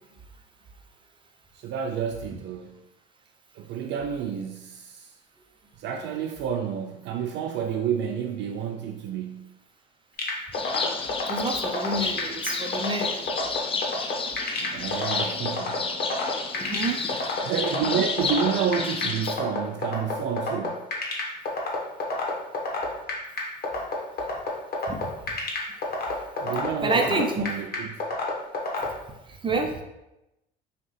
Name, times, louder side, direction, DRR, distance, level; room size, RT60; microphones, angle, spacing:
voice 1, 1.5-2.8 3.5-5.1 5.8-9.6 14.6-16.0 17.4-20.9 26.4-28.0, right 7 dB, 60° right, 4 dB, 0.4 m, -30 dB
sound 1, 10.2-28.9, left 4 dB, 50° left, 1.2 m, -28 dB
sound 2, 10.5-19.3, left 4 dB, 25° left, 0.5 m, -31 dB
voice 2, 11.3-13.1 16.6-17.0 24.9-25.1 26.8-27.4 29.4-29.8, right 2 dB, 25° right, 3 dB, 0.7 m, -27 dB
5.3 x 2.5 x 3.2 m, 0.93 s
supercardioid pair, 75°, 21 cm